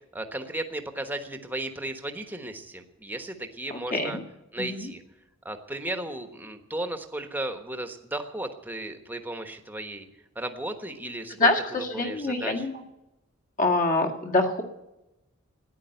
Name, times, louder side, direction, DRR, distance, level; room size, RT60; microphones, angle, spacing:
voice 1, 0.1-4.2 4.5-5.0 5.4-10.1 10.3-12.7, right 1 dB, 10° right, 6 dB, 1.2 m, -35 dB
voice 2, 3.7-4.2 4.6-4.9 11.4-12.8 13.6-14.6, left 2 dB, 40° left, 2 dB, 1.8 m, -25 dB
14.0 x 10.5 x 9.0 m, 0.96 s
head